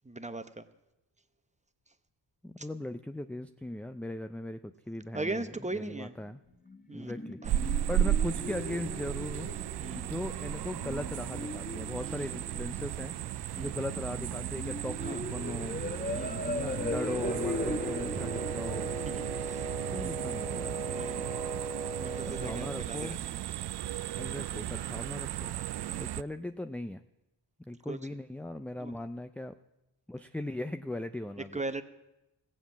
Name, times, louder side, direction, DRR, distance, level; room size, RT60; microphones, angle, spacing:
voice 1, 0.1-0.6 5.1-6.1 6.9-7.1 9.8-10.1 12.0-12.3 13.6-13.7 15.0-15.2 16.1-16.4 19.1-19.2 19.5-19.6 19.9-20.2 20.8-21.3 22.0-23.2 25.8-26.1 27.9-28.0 28.8-28.9 31.5-31.8, right 2 dB, 15° right, 11 dB, 0.9 m, -38 dB
voice 2, 2.4-6.4 6.9-7.4 7.9-9.5 9.9-13.1 13.6-15.8 16.5-18.9 19.9-20.9 22.3-23.3 24.2-25.5 26.0-27.0 27.6-29.5 30.1-31.6, left 1 dB, 5° left, 9 dB, 0.4 m, -39 dB
sound 1, 6.7-20.6, left 2 dB, 20° left, 0.9 m, -39 dB
sound 2, 7.4-26.2, right 12 dB, 60° right, 0.5 m, -35 dB
Wind instrument woodwind instrument, 17.2-22.9, right 4 dB, 75° right, 1.3 m, -38 dB
15.5 x 7.6 x 7.1 m, 0.93 s
cardioid pair, 45°, 47 cm